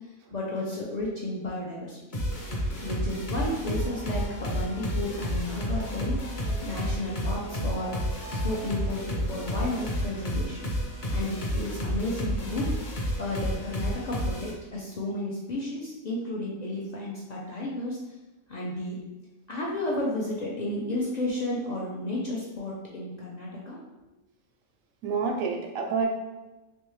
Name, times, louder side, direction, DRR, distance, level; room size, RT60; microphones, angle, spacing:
voice 1, 0.3-2.2 2.8-6.2 6.6-10.7 11.1-12.7 13.2-18.0 18.5-19.0 19.5-23.8, left 1 dB, 70° left, -4 dB, 0.4 m, -32 dB
sound 1, 2.1-14.5, equal, 45° left, 0.7 m, -31 dB
voice 2, 2.5-2.8 25.0-26.1, right 5 dB, 90° right, 2 dB, 1.0 m, -29 dB
sound 2, 3.9-9.8, equal, 20° right, 0.4 m, -46 dB
3.4 x 3.1 x 3.1 m, 1.1 s
omnidirectional pair, 1.4 m